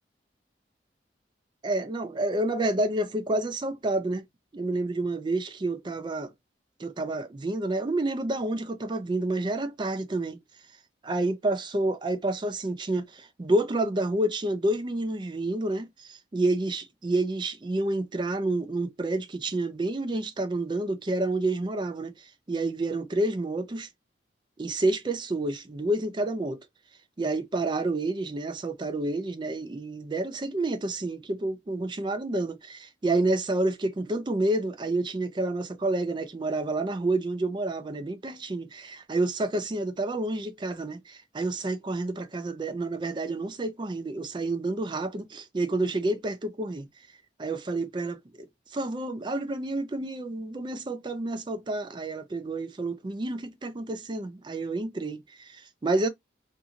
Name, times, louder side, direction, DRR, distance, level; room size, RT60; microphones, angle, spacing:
voice 1, 1.6-4.2 4.5-6.3 6.8-10.4 11.0-23.9 24.6-26.6 27.2-46.9 47.4-48.5 48.7-56.1, right 2 dB, 25° right, 0.4 m, -29 dB
2.6 x 2.5 x 2.7 m
head